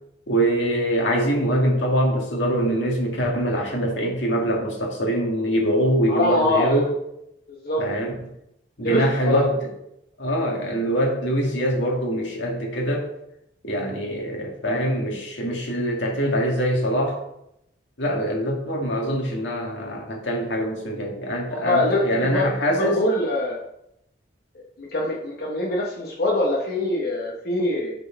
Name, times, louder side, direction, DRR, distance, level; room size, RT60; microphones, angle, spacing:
voice 1, 0.3-7.0 7.8-8.1 8.8-9.7 10.2-13.1 13.6-17.2 18.0-23.0, equal, 85° left, 0 dB, 1.9 m, -23 dB
voice 2, 6.1-6.8 7.5-7.8 8.8-9.5 21.5-22.5 22.8-23.6 24.5-27.9, left 1 dB, 55° left, -2 dB, 1.0 m, -24 dB
7.8 x 4.3 x 4.5 m, 0.79 s
head